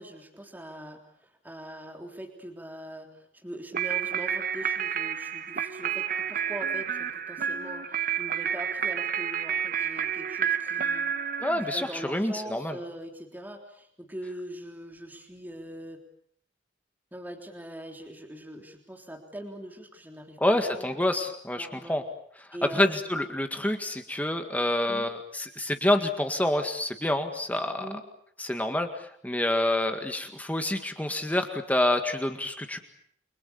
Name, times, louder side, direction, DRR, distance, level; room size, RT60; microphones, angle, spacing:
voice 1, 0.0-11.2 11.6-16.0 17.1-20.9 21.6-22.0 22.5-22.9 24.9-25.1 27.8-28.0, right 1 dB, 10° right, 2 dB, 3.5 m, -42 dB
sound 1, 3.7-12.0, right 8 dB, 50° right, 1.4 m, -30 dB
voice 2, 11.4-12.8 20.4-22.0 22.7-27.9 28.4-32.8, left 1 dB, 10° left, 6 dB, 1.9 m, -27 dB
30.0 x 24.5 x 7.0 m, 0.65 s
head